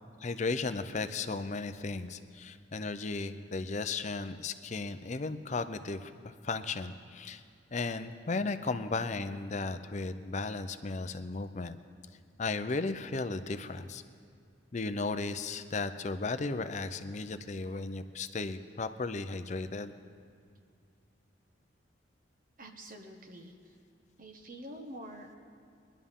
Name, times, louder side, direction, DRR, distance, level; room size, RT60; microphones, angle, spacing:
voice 1, 0.2-7.4 7.7-11.8 12.4-14.0 14.7-19.9, left 3 dB, 35° left, 10 dB, 0.5 m, -35 dB
voice 2, 22.6-23.7 24.2-25.4, right 1 dB, 45° right, 4 dB, 1.2 m, -47 dB
22.5 x 11.0 x 3.7 m, 2.4 s
head